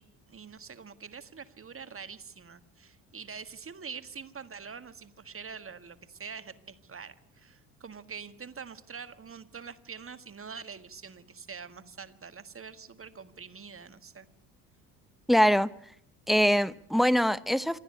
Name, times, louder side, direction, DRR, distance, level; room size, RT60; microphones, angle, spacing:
voice 1, 0.0-14.3, right 6 dB, 30° right, 1.7 m, -45 dB
voice 2, 15.3-15.7 16.3-17.8, equal, ahead, 0.9 m, -23 dB
27.0 x 13.0 x 9.9 m
hypercardioid pair, 65°, 46 cm